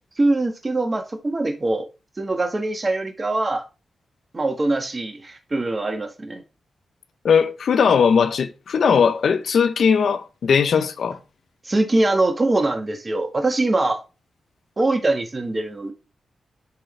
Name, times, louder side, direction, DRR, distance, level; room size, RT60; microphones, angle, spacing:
voice 1, 0.2-1.9 2.2-3.6 4.3-6.4 11.6-14.0 14.8-15.9, right 2 dB, 35° right, 1.6 m, -22 dB
voice 2, 7.2-11.2, left 6 dB, 70° left, 0.6 m, -19 dB
10.5 x 3.9 x 3.3 m
supercardioid pair, 45°, 0 cm